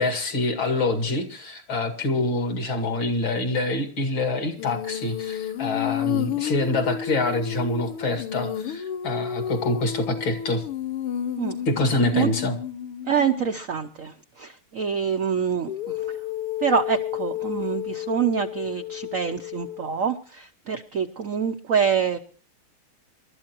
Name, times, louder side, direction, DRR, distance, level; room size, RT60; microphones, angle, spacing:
voice 1, 0.0-10.6 11.7-12.6, left 2 dB, 60° left, 5 dB, 2.9 m, -26 dB
Female singing, 4.6-13.5 15.7-19.9, left 10 dB, 90° left, 1.9 m, -31 dB
voice 2, 13.1-15.7 16.6-22.2, right 7 dB, 65° right, 7 dB, 0.8 m, -26 dB
27.5 x 13.0 x 3.0 m, 0.41 s
omnidirectional pair, 2.4 m